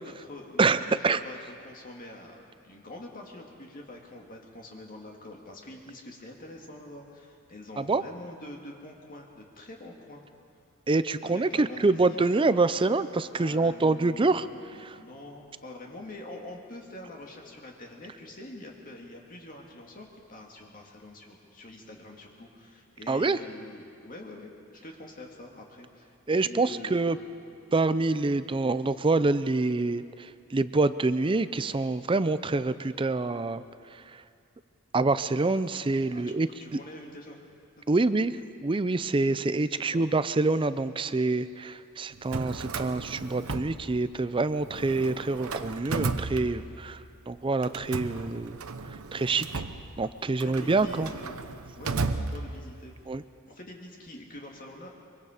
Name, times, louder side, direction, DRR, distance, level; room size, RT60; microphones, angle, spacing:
voice 1, 0.0-1.4 1.6-10.2 11.2-12.2 13.3-27.3 36.1-37.4 37.9-38.0 39.7-40.1 50.4-51.4 51.7-53.2 53.5-54.9, left 1 dB, 40° left, 0 dB, 1.9 m, -45 dB
voice 2, 0.6-1.2 7.8-8.0 10.9-14.5 14.8-15.0 23.1-23.4 26.3-27.2 27.7-33.6 33.9-34.2 34.9-36.5 37.9-38.3 38.6-48.6 49.1-49.5 50.0-51.1 53.1-53.2, right 3 dB, 25° right, 13 dB, 0.5 m, -26 dB
Drawer open or close, 42.1-44.3 44.6-47.0 47.6-52.9, right 3 dB, 85° right, 0.9 m, -35 dB
24.0 x 24.0 x 5.0 m, 2.4 s
head